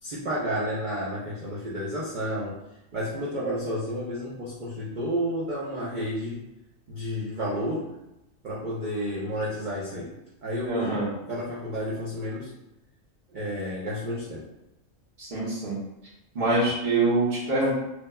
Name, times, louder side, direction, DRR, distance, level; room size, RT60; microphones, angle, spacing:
voice 1, 0.0-2.6 2.9-6.4 6.9-8.0 8.4-10.2 10.4-12.5 13.3-14.5, equal, 80° right, -7 dB, 0.4 m, -31 dB
voice 2, 10.7-11.1 15.2-15.8 16.3-17.8, right 2 dB, 45° right, -9 dB, 0.7 m, -25 dB
2.9 x 2.1 x 2.2 m, 0.92 s
omnidirectional pair, 1.5 m